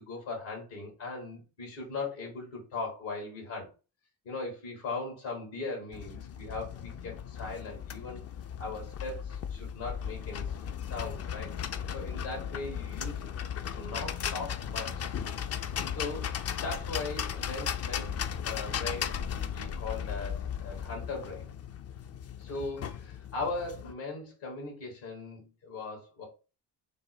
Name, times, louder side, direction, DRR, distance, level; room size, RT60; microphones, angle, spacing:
voice 1, 0.0-3.7 4.2-8.2 8.6-10.6 10.8-11.5 11.9-13.3 13.7-15.1 15.9-21.5 22.4-26.3, left 3 dB, 70° left, -1 dB, 1.7 m, -39 dB
sound 1, 5.9-23.9, left 8 dB, 35° left, 0.4 m, -36 dB
3.3 x 2.1 x 4.2 m, 0.32 s
hypercardioid pair, 50°, 46 cm